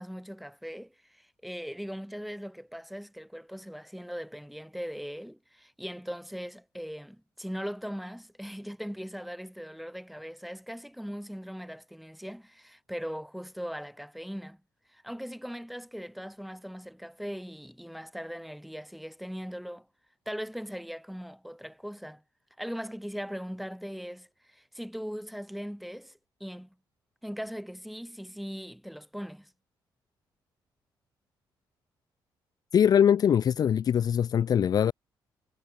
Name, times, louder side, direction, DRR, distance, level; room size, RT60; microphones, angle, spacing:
voice 1, 0.0-14.6 14.9-19.9 20.3-22.2 22.6-26.7 27.2-29.5, equal, ahead, 2.5 m, -39 dB
voice 2, 32.7-34.9, left 8 dB, 50° left, 0.6 m, -22 dB
cardioid pair, 120°, 8 cm